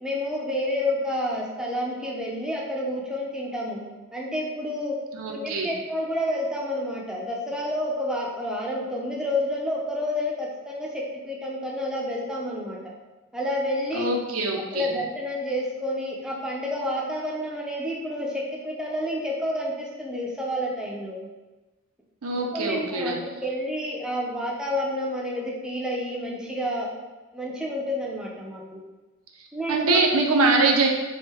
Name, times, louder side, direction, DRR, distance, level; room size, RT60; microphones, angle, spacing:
voice 1, 0.0-3.8 4.1-5.0 5.3-12.8 13.3-14.1 14.5-21.2 22.5-26.9 27.3-28.8 29.5-30.3, left 1 dB, 5° right, -3 dB, 0.5 m, -29 dB
voice 2, 5.1-5.7 13.9-14.9 22.2-23.2 29.7-30.9, right 3 dB, 65° right, 1 dB, 0.6 m, -23 dB
3.6 x 2.6 x 4.2 m, 1.2 s
head